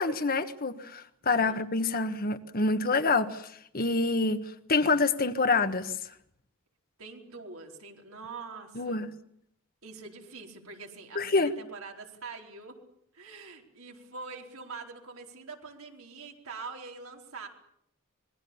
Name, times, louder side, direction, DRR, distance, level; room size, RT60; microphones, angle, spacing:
voice 1, 0.0-3.4 3.7-4.4 4.7-5.9 8.7-9.1 11.1-11.5, left 3 dB, 45° left, 1.4 m, -26 dB
voice 2, 1.2-1.7 7.0-9.1 9.8-12.8 13.1-17.5, right 4 dB, 80° right, 4.4 m, -44 dB
26.0 x 21.5 x 7.2 m
head